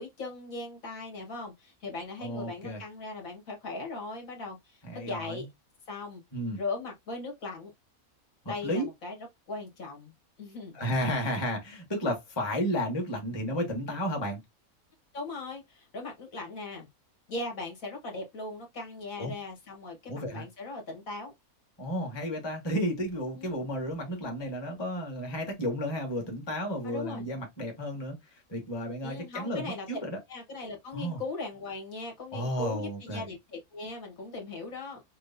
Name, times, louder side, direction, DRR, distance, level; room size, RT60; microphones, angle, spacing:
voice 1, 0.0-5.5 5.9-6.2 6.6-7.7 8.5-9.2 9.5-10.1 10.4-10.8 15.1-16.9 17.3-21.3 23.4-23.6 26.8-27.3 29.0-29.9 30.3-35.0, left 3 dB, 65° left, 1.8 m, -39 dB
voice 2, 2.2-2.8 4.8-5.4 6.3-6.6 8.4-8.9 10.7-14.4 19.2-19.3 20.1-20.4 21.8-30.2 30.9-31.2 32.3-33.2, equal, 20° left, 1.3 m, -32 dB
6.1 x 2.2 x 2.6 m
omnidirectional pair, 1.6 m